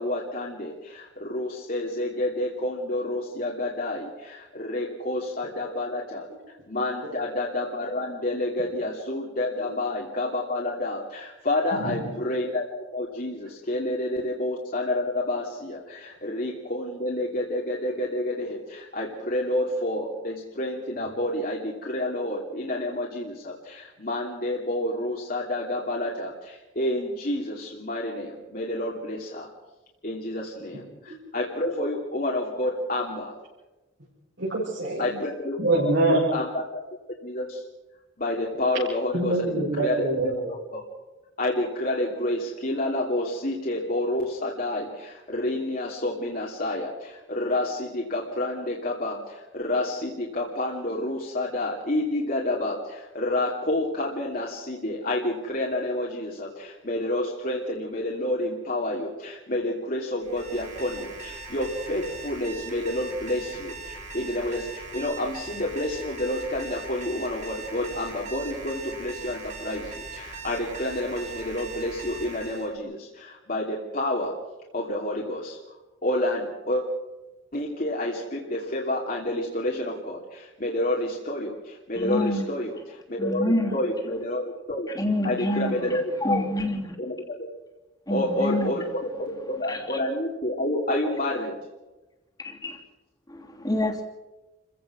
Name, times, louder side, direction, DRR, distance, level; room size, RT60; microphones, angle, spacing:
voice 1, 0.0-12.7 12.9-29.5 30.0-33.4 35.0-35.6 36.1-36.8 37.2-37.6 38.2-40.8 41.4-74.4 74.7-76.8 77.5-84.4 84.7-84.9 85.2-86.5 87.0-87.1 88.1-91.6, left 1 dB, 45° left, -2 dB, 2.7 m, -29 dB
voice 2, 11.8-12.1 31.1-31.2 34.4-35.2 35.6-36.2 39.1-40.4, right 2 dB, 65° right, -7 dB, 7.3 m, -25 dB
Alarm, 60.2-72.7, right 3 dB, 35° right, 3.4 m, -40 dB
voice 3, 82.0-82.5 83.2-83.8 84.9-87.0 88.1-88.7 89.7-89.8 92.4-92.8 93.3-94.0, left 1 dB, 20° left, 2 dB, 2.9 m, -27 dB
29.0 x 16.0 x 6.2 m, 1.1 s
head